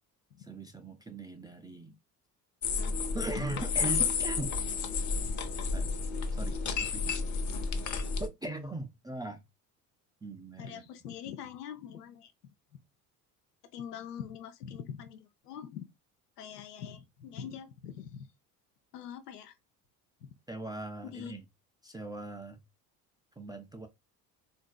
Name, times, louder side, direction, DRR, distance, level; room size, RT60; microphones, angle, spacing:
voice 1, 0.4-2.0 3.1-4.6 5.7-5.9 6.3-7.2 8.2-9.4 10.2-10.8 20.5-21.4 21.8-22.6 23.4-23.9, right 2 dB, 10° right, 0.3 m, -40 dB
sound 1, 2.6-8.3, left 5 dB, 40° left, 0.8 m, -31 dB
voice 2, 2.8-3.4 10.6-12.3 13.7-15.8 16.4-18.3 18.9-19.6 20.2-20.3 21.0-21.3, left 8 dB, 85° left, 0.6 m, -44 dB
3.7 x 2.5 x 2.2 m
hypercardioid pair, 60°, 46 cm